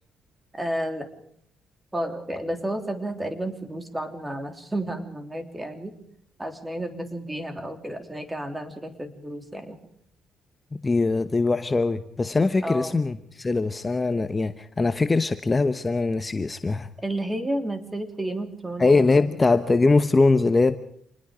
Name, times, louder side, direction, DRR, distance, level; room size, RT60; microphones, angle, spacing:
voice 1, 0.5-1.1 1.9-5.9 6.4-9.8 12.6-13.0 17.0-19.2, right 1 dB, 15° right, 7 dB, 3.1 m, -31 dB
voice 2, 10.7-16.9 18.8-20.8, left 3 dB, 25° left, 10 dB, 1.0 m, -22 dB
27.0 x 20.5 x 5.1 m, 0.68 s
cardioid pair, 90°, 0 cm